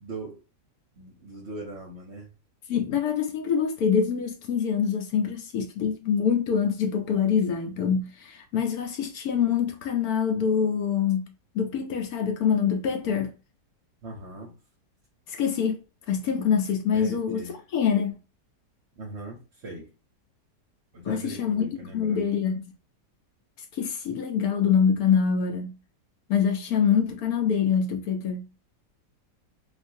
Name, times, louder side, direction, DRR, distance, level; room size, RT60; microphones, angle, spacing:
voice 1, 0.0-0.4 0.9-2.3 14.0-14.5 16.9-17.6 19.0-19.9 20.9-22.2, right 2 dB, 55° right, 0.8 m, -40 dB
voice 2, 2.7-11.2 11.5-13.3 15.3-18.2 21.0-22.6 23.7-25.8 26.3-28.5, left 7 dB, 70° left, 1.1 m, -25 dB
3.7 x 2.6 x 2.6 m
omnidirectional pair, 1.8 m